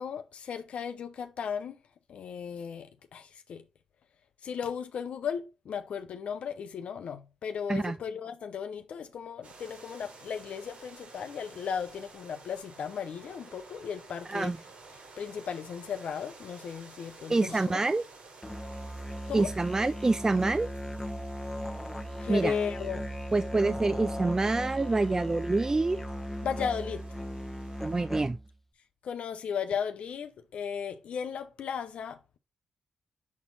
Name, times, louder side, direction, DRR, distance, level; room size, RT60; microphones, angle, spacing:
voice 1, 0.0-1.8 2.1-3.6 4.4-14.5 15.2-17.8 19.3-19.5 22.2-23.0 26.4-27.1 29.0-32.4, left 7 dB, 70° left, 0.7 m, -36 dB
sound 1, 9.4-28.0, right 3 dB, 70° right, 4.6 m, -53 dB
voice 2, 17.3-18.0 19.3-20.7 22.3-22.5 23.3-26.0 27.8-28.4, right 3 dB, 25° right, 0.5 m, -26 dB
Musical instrument, 18.4-28.6, equal, 10° left, 1.2 m, -37 dB
7.1 x 4.3 x 4.0 m
supercardioid pair, 45°, 2 cm